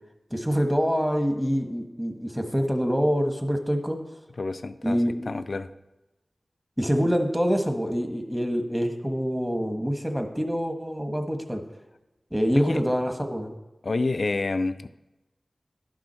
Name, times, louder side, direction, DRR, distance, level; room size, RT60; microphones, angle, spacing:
voice 1, 0.3-4.0 4.8-5.3 6.8-11.6 12.3-13.5, equal, 5° right, 5 dB, 1.3 m, -26 dB
voice 2, 4.4-5.0 5.3-5.7 12.5-12.8 13.8-14.9, left 3 dB, 70° left, 12 dB, 0.4 m, -28 dB
11.5 x 6.2 x 4.4 m, 1.0 s
wide cardioid pair, 45°, 0 cm